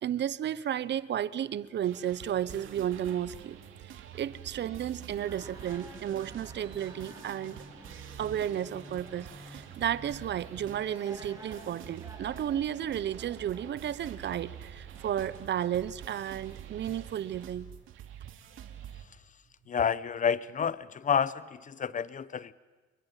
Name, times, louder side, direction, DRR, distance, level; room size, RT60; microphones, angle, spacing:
voice 1, 0.0-3.6 4.1-7.6 8.2-17.7, right 10 dB, 60° right, 18 dB, 0.9 m, -33 dB
sound 1, 1.8-19.0, right 10 dB, 85° right, 2.7 m, -47 dB
sound 2, 4.5-12.7, equal, 5° left, 1.8 m, -54 dB
sound 3, 5.3-15.3, right 2 dB, 15° right, 7.3 m, -52 dB
voice 2, 19.7-22.5, left 7 dB, 40° left, 18 dB, 0.9 m, -29 dB
28.5 x 21.0 x 9.2 m, 1.3 s
cardioid pair, 90°, 20 cm